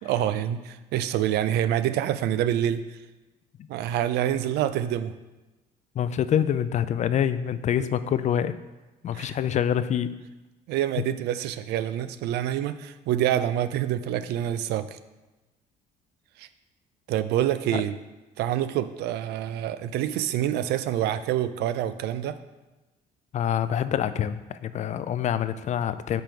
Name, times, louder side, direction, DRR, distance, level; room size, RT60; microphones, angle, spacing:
voice 1, 0.0-3.0 3.7-5.1 9.1-9.4 10.7-15.0 16.4-16.5 17.1-18.0 18.4-22.4, right 11 dB, 80° right, 12 dB, 0.4 m, -26 dB
voice 2, 6.0-8.5 9.0-10.2 17.7-17.8 23.3-26.2, left 9 dB, 45° left, 13 dB, 0.4 m, -26 dB
5.9 x 5.2 x 4.5 m, 1.1 s
cardioid pair, 110°, 17 cm